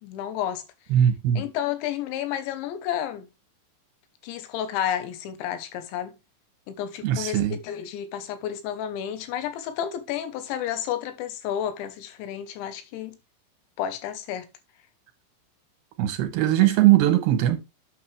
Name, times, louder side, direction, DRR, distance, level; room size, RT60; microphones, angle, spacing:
voice 1, 0.0-0.6 1.4-3.3 4.2-6.2 6.7-13.2 13.8-14.5, left 10 dB, 85° left, 3.4 m, -31 dB
voice 2, 0.9-1.4 7.0-7.6 16.0-17.6, right 12 dB, 75° right, 3.0 m, -20 dB
8.7 x 6.9 x 3.3 m
omnidirectional pair, 5.1 m